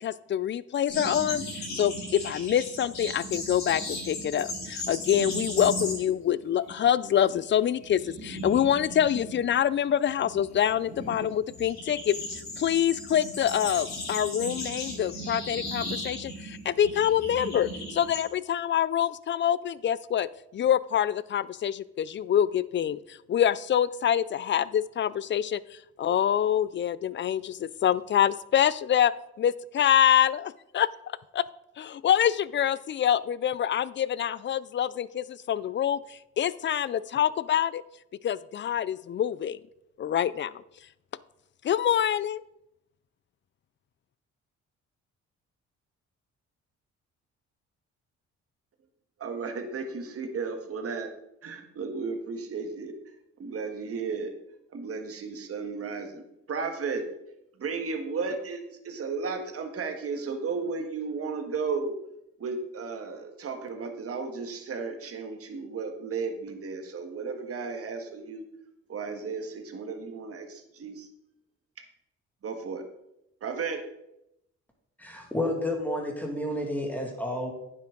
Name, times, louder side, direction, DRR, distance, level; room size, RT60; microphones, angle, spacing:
voice 1, 0.0-20.3 20.5-25.6 26.0-29.1 29.4-30.9 31.3-31.4 31.8-37.8 38.2-39.6 40.0-40.5 41.6-42.4, left 10 dB, 40° left, 19 dB, 0.4 m, -26 dB
sound 1, 0.9-6.3 6.5-6.9 7.2-18.2, left 1 dB, 65° left, 3.5 m, -36 dB
voice 2, 49.2-51.1 51.4-52.9 53.4-54.3 54.7-56.2 56.5-57.0 57.6-61.9 62.4-68.4 68.9-71.1 72.4-72.8 73.4-73.8, right 4 dB, 50° right, 6 dB, 1.6 m, -34 dB
voice 3, 75.0-77.5, left 1 dB, 5° left, 1 dB, 2.2 m, -30 dB
9.8 x 7.3 x 3.8 m, 0.83 s
cardioid pair, 90°, 30 cm